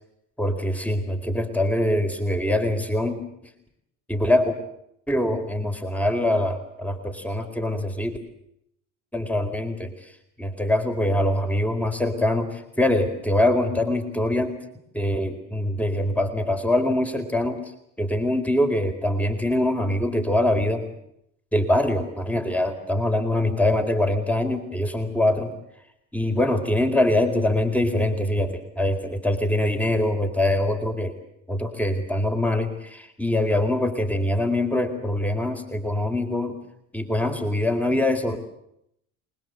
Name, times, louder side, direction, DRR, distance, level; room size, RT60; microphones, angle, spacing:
voice 1, 0.4-3.2 4.1-4.6 5.1-8.2 9.1-10.1 10.4-14.6 14.9-17.7 18.0-20.9 21.5-25.5 26.1-31.2 31.5-36.6 36.9-38.4, left 1 dB, 5° left, 6 dB, 4.2 m, -23 dB
26.5 x 21.0 x 8.1 m, 0.77 s
hypercardioid pair, 75°, 37 cm